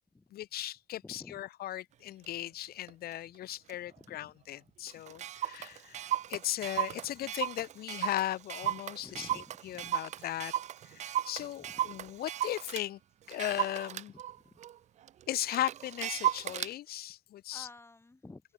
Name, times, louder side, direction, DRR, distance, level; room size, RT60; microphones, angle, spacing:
voice 1, 0.3-10.5 10.9-13.0 13.3-14.1 15.3-17.7, left 13 dB, 65° left, 1.5 m, -37 dB
voice 2, 1.0-1.4 3.7-4.4 5.6-5.7 7.0-7.2 9.0-9.6 11.6-11.9 14.1-14.6 17.5-18.4, left 2 dB, 15° left, 4.1 m, -53 dB
Clock, 2.2-2.3 2.9-3.1 3.7-3.8 4.0-4.1 4.5-4.6 4.9-12.9 13.3-16.7, right 11 dB, 45° right, 0.4 m, -36 dB
open air
cardioid pair, 110°, 17 cm